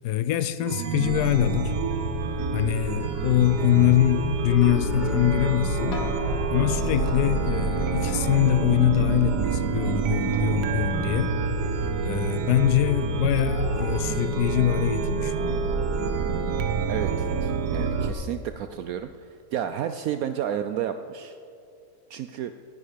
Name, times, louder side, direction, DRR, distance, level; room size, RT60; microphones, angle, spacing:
voice 1, 0.0-1.7 2.5-6.0 6.5-11.4 12.0-15.6, left 13 dB, 85° left, 12 dB, 1.2 m, -24 dB
Chime, 0.6-18.1, right 4 dB, 90° right, 1.5 m, -27 dB
sound 1, 3.1-4.0 5.9-7.3 8.1-9.3 10.3-11.2 13.4-14.0, left 2 dB, 65° left, 1.9 m, -42 dB
sound 2, 4.5-10.0, left 4 dB, 45° left, 0.6 m, -38 dB
voice 2, 16.9-21.4 22.1-22.5, right 9 dB, 70° right, 9 dB, 1.0 m, -31 dB
18.5 x 9.9 x 5.1 m, 2.5 s
omnidirectional pair, 1.7 m